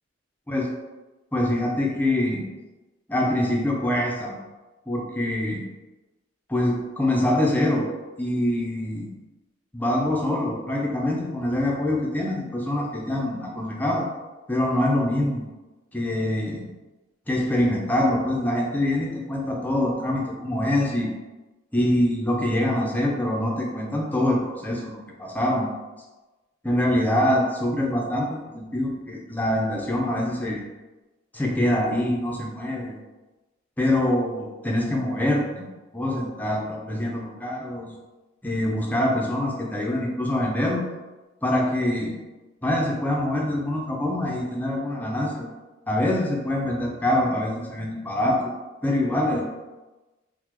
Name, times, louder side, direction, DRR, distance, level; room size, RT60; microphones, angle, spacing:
voice 1, 1.3-2.4 3.1-4.4 4.9-5.6 6.5-7.9 8.2-9.1 9.7-14.1 14.5-15.4 15.9-16.7 17.3-21.1 21.7-25.7 26.6-30.6 31.3-32.9 33.8-35.6 35.9-37.9 38.4-40.8 41.4-42.2 42.6-45.5 45.9-48.5 48.8-49.4, left 1 dB, 10° left, -2 dB, 0.4 m, -24 dB
3.5 x 2.0 x 3.0 m, 1.1 s
head